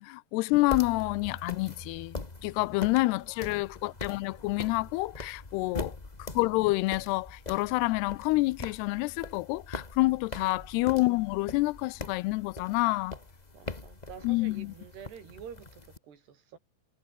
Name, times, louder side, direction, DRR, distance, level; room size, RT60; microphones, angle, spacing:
voice 1, 0.0-2.2 2.4-6.0 6.3-13.1 14.2-14.7, left 21 dB, 85° left, 2.7 m, -28 dB
sound 1, 0.5-16.0, left 3 dB, 45° left, 0.5 m, -43 dB
voice 2, 5.6-5.9 10.4-10.7 13.5-16.6, right 7 dB, 85° right, 5.7 m, -48 dB
omnidirectional pair, 4.6 m